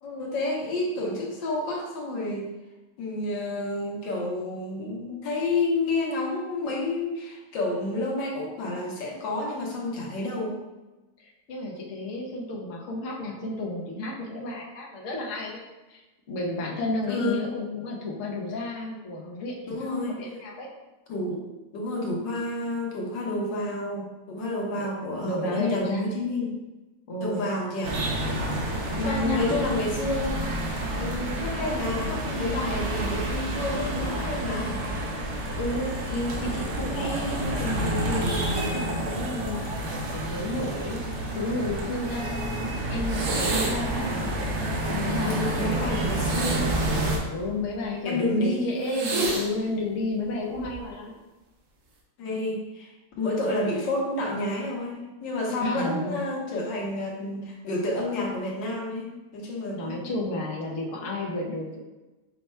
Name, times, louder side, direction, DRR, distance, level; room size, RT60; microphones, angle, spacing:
voice 1, 0.0-2.5 3.0-10.6 17.1-17.4 19.7-20.2 21.1-21.4 21.7-26.5 27.2-27.9 29.0-30.3 31.0-34.8 45.2-46.7 48.0-48.8 52.2-60.1, left 2 dB, 85° left, -2 dB, 1.6 m, -29 dB
voice 2, 11.2-15.6 15.9-16.0 16.3-20.7 24.7-24.8 25.2-26.1 27.1-27.5 29.0-29.7 35.5-39.7 40.1-41.0 41.3-44.2 44.8-46.0 47.3-51.1 55.6-56.2 59.7-61.8, left 2 dB, 55° left, -2 dB, 1.0 m, -32 dB
sound 1, 27.8-47.2, right 1 dB, 55° right, 0.9 m, -29 dB
sound 2, 43.1-43.9 46.1-47.7 48.9-49.5 50.5-50.9, right 2 dB, 85° right, 1.5 m, -30 dB
5.4 x 2.3 x 4.3 m, 1.1 s
omnidirectional pair, 1.9 m